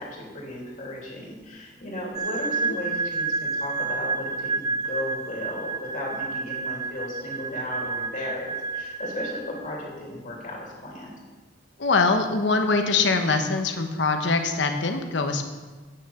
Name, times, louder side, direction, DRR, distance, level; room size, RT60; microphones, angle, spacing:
voice 1, 0.0-11.1, left 1 dB, 45° left, -3 dB, 2.8 m, -35 dB
sound 1, 2.1-9.8, right 3 dB, 25° right, 0.4 m, -30 dB
voice 2, 11.8-15.5, left 3 dB, 90° left, 6 dB, 1.0 m, -23 dB
9.0 x 6.4 x 7.1 m, 1.3 s
head